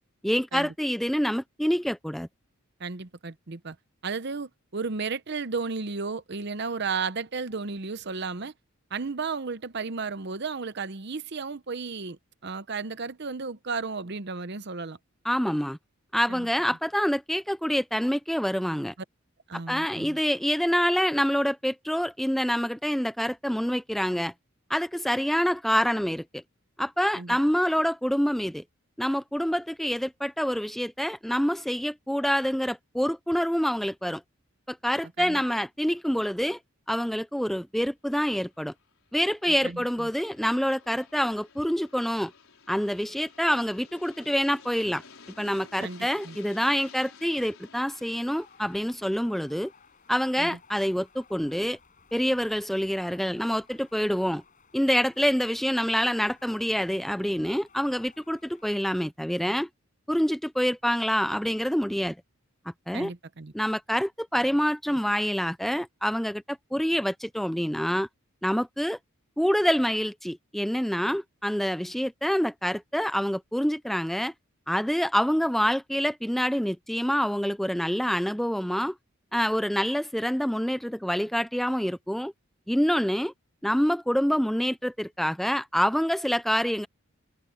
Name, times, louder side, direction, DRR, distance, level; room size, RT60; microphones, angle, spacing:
voice 1, 0.2-2.3 15.2-15.8 16.1-18.9 19.7-24.3 24.7-26.4 26.8-28.6 29.0-34.2 34.7-36.6 36.9-38.7 39.1-42.3 42.7-45.0 45.4-49.7 50.1-51.8 52.1-54.4 54.7-59.7 60.1-62.2 62.9-63.1 63.5-68.1 68.4-69.0 69.4-74.3 74.7-79.0 79.3-82.3 82.7-83.3 83.6-86.9, equal, ahead, 0.3 m, -26 dB
voice 2, 2.8-3.8 4.0-8.5 8.9-15.0 16.3-16.5 19.5-20.2 27.1-27.4 35.2-35.4 39.6-40.1 45.8-46.4 50.4-50.6 62.9-63.5, right 4 dB, 50° right, 0.8 m, -34 dB
Aircraft, 38.5-51.3, left 5 dB, 70° left, 4.4 m, -53 dB
sound 1, 47.9-58.7, left 5 dB, 35° left, 7.0 m, -59 dB
head